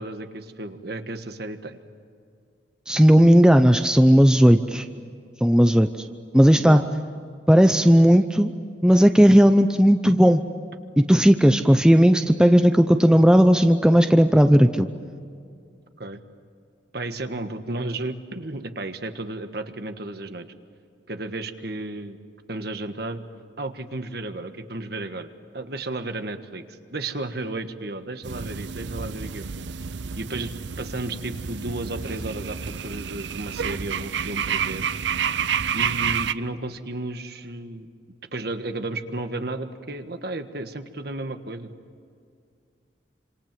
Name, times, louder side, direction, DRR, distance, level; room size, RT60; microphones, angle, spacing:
voice 1, 0.0-1.8 6.6-6.9 16.0-16.2 16.9-20.5 21.1-22.2 22.5-23.2 23.6-25.3 25.5-29.4 30.2-34.9 35.7-37.9 38.3-41.7, right 2 dB, 55° right, 8 dB, 1.5 m, -33 dB
voice 2, 2.9-4.8 5.4-5.9 6.3-6.8 7.5-8.5 8.8-10.4 11.1-14.9, equal, 5° right, 8 dB, 0.6 m, -15 dB
sound 1, 28.2-36.3, right 7 dB, 70° right, 0.7 m, -29 dB
27.5 x 26.5 x 7.6 m, 2.3 s
head